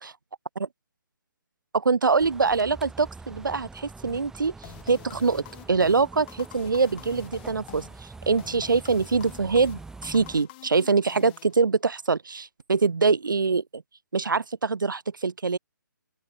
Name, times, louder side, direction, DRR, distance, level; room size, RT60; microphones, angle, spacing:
voice 1, 1.7-4.5 4.9-13.8 14.1-15.6, right 4 dB, 75° right, 0.8 m, -24 dB
sound 1, 2.2-10.4, right 3 dB, 5° right, 3.7 m, -44 dB
sound 2, 4.6-12.0, left 21 dB, 30° left, 2.8 m, -48 dB
open air
figure-of-eight pair, 140°, 11 cm